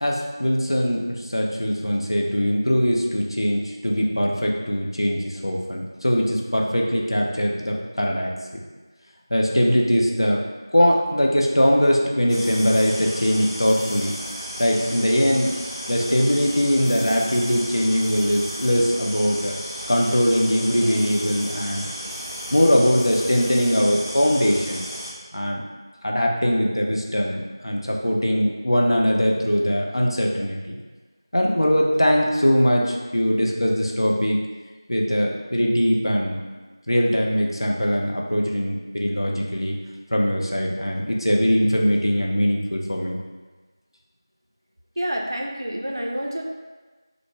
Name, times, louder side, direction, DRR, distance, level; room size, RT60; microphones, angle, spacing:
voice 1, 0.0-8.3 9.3-10.4 10.7-14.1 14.6-15.5 15.9-19.6 19.9-21.8 22.5-24.8 25.3-25.6 26.0-30.8 31.3-34.4 34.9-36.4 36.9-39.8 40.1-43.2, equal, 75° left, -1 dB, 0.5 m, -21 dB
sound 1, 12.3-25.1, equal, 10° right, 0.6 m, -34 dB
voice 2, 45.0-46.4, equal, 55° right, 0 dB, 0.4 m, -28 dB
3.0 x 2.0 x 3.2 m, 1.3 s
figure-of-eight pair, 175°, 2 cm